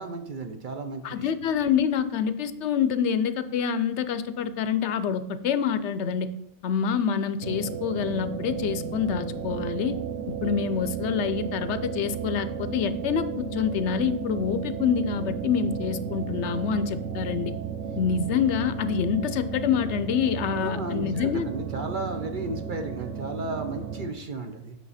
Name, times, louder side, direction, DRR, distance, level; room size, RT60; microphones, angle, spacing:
voice 1, 0.0-1.3 20.6-24.8, right 2 dB, 50° right, 6 dB, 0.8 m, -34 dB
voice 2, 1.0-6.3 6.6-10.0 10.3-17.5 18.0-21.5, left 7 dB, 75° left, 12 dB, 0.8 m, -26 dB
sound 1, 7.4-24.1, right 7 dB, 85° right, 1.0 m, -34 dB
8.6 x 6.0 x 4.1 m, 0.81 s
omnidirectional pair, 1.2 m